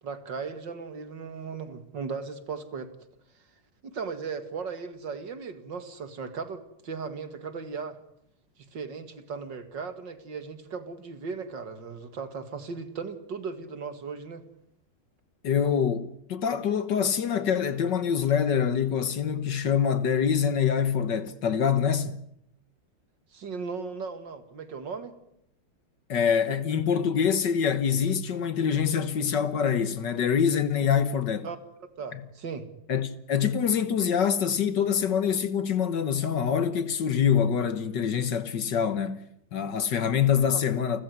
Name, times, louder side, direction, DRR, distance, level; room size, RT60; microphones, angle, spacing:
voice 1, 0.0-2.9 3.8-8.0 8.7-14.4 23.3-25.1 31.4-31.6 32.0-32.7 40.5-40.6, right 5 dB, 60° right, 2.6 m, -37 dB
voice 2, 15.4-16.0 16.3-22.2 26.1-31.5 32.1-32.2 32.9-41.0, left 7 dB, 60° left, 1.8 m, -25 dB
29.5 x 14.0 x 9.6 m
omnidirectional pair, 2.3 m